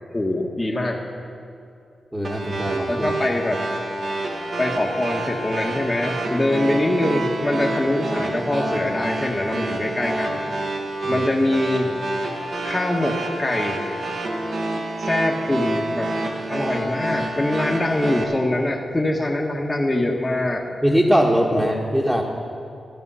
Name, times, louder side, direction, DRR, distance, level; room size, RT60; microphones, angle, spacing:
voice 1, 0.1-1.0 2.9-3.6 4.6-10.4 11.1-11.9 12.6-13.8 15.0-16.1 16.5-20.6 21.5-21.6, left 1 dB, 20° left, 0 dB, 1.3 m, -23 dB
voice 2, 2.1-3.1 11.0-11.3 20.8-22.2, equal, 10° right, -3 dB, 1.5 m, -21 dB
sound 1, 2.2-18.2, right 2 dB, 60° right, 1.7 m, -28 dB
14.0 x 10.5 x 5.6 m, 2.6 s
cardioid pair, 70°, 0 cm